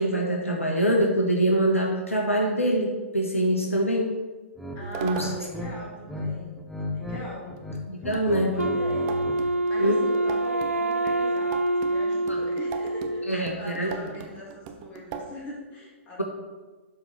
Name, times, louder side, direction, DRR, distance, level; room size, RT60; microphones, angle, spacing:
voice 1, 0.0-4.1 5.0-5.3 7.9-8.5 9.8-10.1 12.3-12.4 13.3-14.1, right 1 dB, 85° left, 0 dB, 1.4 m, -24 dB
sound 1, 4.6-4.8 5.1-6.3 6.6-7.2 7.5-9.4, left 1 dB, 5° left, 1.1 m, -35 dB
voice 2, 4.7-6.6 6.9-7.6 8.2-16.2, left 1 dB, 25° left, -3 dB, 2.6 m, -41 dB
sound 2, 4.8-5.6 7.6-7.7 8.1-15.4, right 6 dB, 30° right, 0.7 m, -39 dB
Wind instrument woodwind instrument, 8.6-13.6, right 1 dB, 85° right, 0.4 m, -26 dB
12.0 x 4.1 x 4.5 m, 1.3 s
figure-of-eight pair, 115°, 7 cm